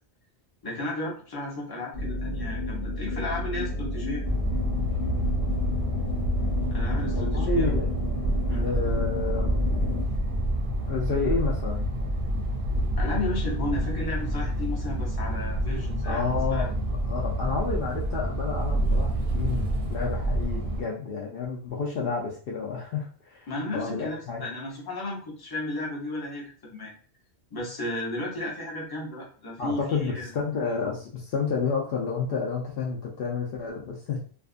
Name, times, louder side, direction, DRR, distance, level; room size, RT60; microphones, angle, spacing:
voice 1, 0.6-4.2 6.7-7.8 8.4-8.7 13.0-16.2 16.5-16.7 23.5-26.9 27.5-30.3, left 1 dB, 25° left, -3 dB, 0.7 m, -34 dB
sound 1, 1.9-10.0, left 2 dB, 90° left, 1.2 m, -31 dB
sound 2, 4.2-20.8, equal, 60° right, 0.7 m, -28 dB
voice 2, 7.1-7.9 8.6-9.6 10.9-12.2 16.1-16.7 17.0-23.5 23.7-24.4 29.6-34.2, left 4 dB, 65° left, -3 dB, 0.7 m, -30 dB
2.5 x 2.4 x 2.4 m, 0.43 s
omnidirectional pair, 1.1 m